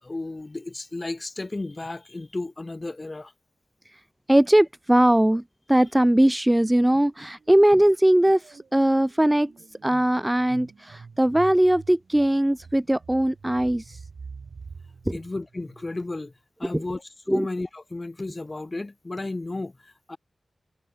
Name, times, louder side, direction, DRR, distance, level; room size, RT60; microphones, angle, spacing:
voice 1, 0.0-3.3 15.1-16.3 16.6-20.2, left 2 dB, 35° left, 4.0 m, -33 dB
voice 2, 4.3-5.4 5.7-9.5 9.8-14.0 15.1-15.2 16.7-16.8 17.3-17.5, right 1 dB, 10° right, 0.4 m, -20 dB
sound 1, 7.4-16.2, right 5 dB, 75° right, 4.6 m, -46 dB
cardioid pair, 65°, 0 cm